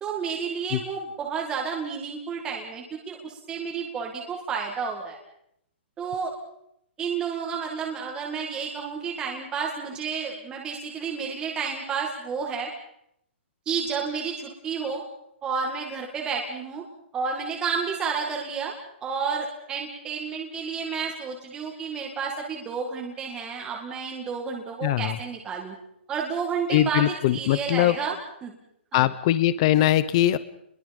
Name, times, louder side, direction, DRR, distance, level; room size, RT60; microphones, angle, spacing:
voice 1, 0.0-5.2 6.0-6.3 7.0-12.7 13.7-15.0 15.4-16.8 17.1-18.7 19.0-25.8 26.1-28.5 28.9-29.1, right 6 dB, 10° right, 0 dB, 2.1 m, -31 dB
voice 2, 24.8-25.2 26.7-28.0 28.9-30.4, left 13 dB, 30° left, 16 dB, 0.9 m, -21 dB
28.5 x 22.0 x 5.4 m, 0.75 s
hypercardioid pair, 170°, 6 cm